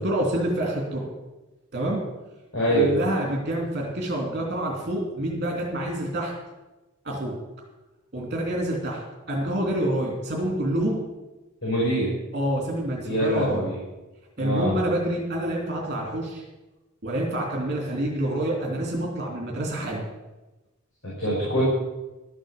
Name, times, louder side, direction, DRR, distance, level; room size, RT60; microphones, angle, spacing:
voice 1, 0.0-1.1 1.7-2.0 2.7-6.3 7.0-7.3 8.1-9.0 9.3-11.0 12.3-13.7 14.4-16.4 17.0-20.1, right 1 dB, 45° right, -1 dB, 3.0 m, -27 dB
voice 2, 2.5-2.9 11.6-12.1 13.0-13.8 14.4-14.8 21.2-21.6, right 1 dB, 60° left, -6 dB, 5.1 m, -24 dB
12.5 x 9.0 x 7.2 m, 1.1 s
head